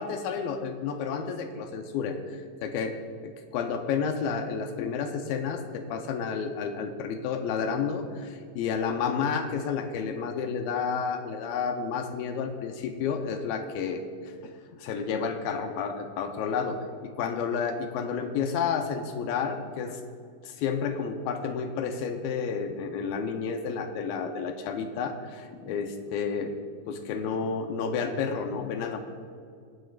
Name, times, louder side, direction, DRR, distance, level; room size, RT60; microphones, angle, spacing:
voice 1, 0.0-3.0 3.2-14.1 14.4-14.5 14.8-20.0 20.4-26.5 26.9-29.0, left 6 dB, 80° left, 6 dB, 2.4 m, -31 dB
23.5 x 8.8 x 2.5 m, 2.2 s
omnidirectional pair, 4.5 m